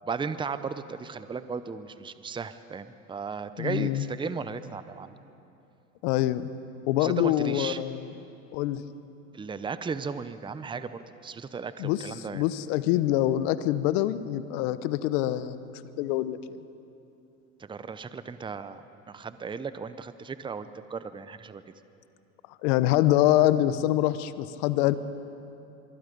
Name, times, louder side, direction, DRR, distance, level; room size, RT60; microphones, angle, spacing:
voice 1, 0.0-5.1 7.0-7.8 9.3-12.4 17.6-21.6, right 5 dB, 10° right, 13 dB, 0.8 m, -35 dB
voice 2, 3.6-4.0 6.0-6.5 6.9-8.1 8.5-8.8 11.8-12.0 12.3-15.6 16.0-16.4 22.6-25.0, left 14 dB, 60° left, 14 dB, 1.1 m, -25 dB
25.0 x 23.5 x 5.4 m, 2.7 s
hypercardioid pair, 95°, 41 cm